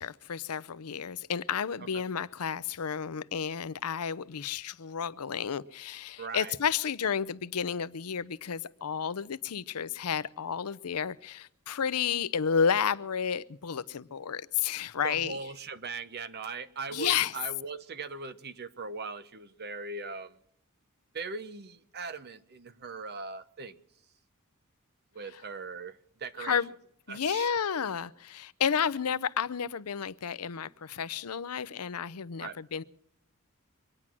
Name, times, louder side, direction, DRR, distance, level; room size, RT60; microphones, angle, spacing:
voice 1, 0.0-15.4 16.9-17.3 26.4-26.7 27.1-32.8, left 7 dB, 85° left, 0.6 m, -31 dB
voice 2, 6.2-6.6 15.0-20.4 21.1-23.8 25.1-26.6 27.1-27.5 32.4-32.6, right 4 dB, 45° right, 0.9 m, -39 dB
24.5 x 9.9 x 6.0 m
head